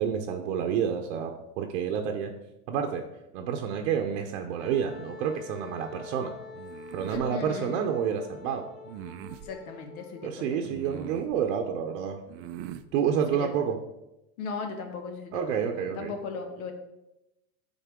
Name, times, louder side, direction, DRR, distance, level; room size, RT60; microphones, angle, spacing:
voice 1, 0.0-2.3 2.7-3.0 3.3-6.3 6.9-8.6 10.2-12.2 12.9-13.8 15.3-16.1, right 8 dB, 65° right, 4 dB, 0.8 m, -29 dB
Wind instrument woodwind instrument, 4.6-10.5, left 4 dB, 25° left, 0.7 m, -46 dB
sound 1, 6.5-7.2 8.8-9.5 10.6-11.4 12.3-12.9, right 11 dB, 45° right, 0.4 m, -41 dB
voice 2, 7.1-7.9 9.4-11.1 13.3-13.5 14.4-16.7, left 4 dB, 80° left, 4 dB, 1.4 m, -38 dB
9.3 x 3.9 x 3.6 m, 0.93 s
supercardioid pair, 130°, 42 cm